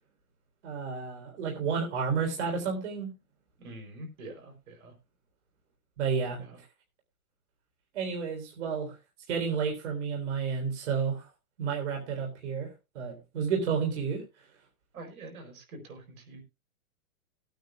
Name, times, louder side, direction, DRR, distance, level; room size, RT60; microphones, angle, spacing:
voice 1, 0.6-3.1 6.0-6.4 7.9-8.9 9.3-11.2 11.6-14.2, right 6 dB, 55° right, 1 dB, 3.6 m, -31 dB
voice 2, 3.6-4.9 6.4-6.6 14.9-16.4, right 2 dB, 75° right, 4 dB, 4.6 m, -45 dB
21.5 x 9.3 x 2.3 m, 0.27 s
hypercardioid pair, 170°, 42 cm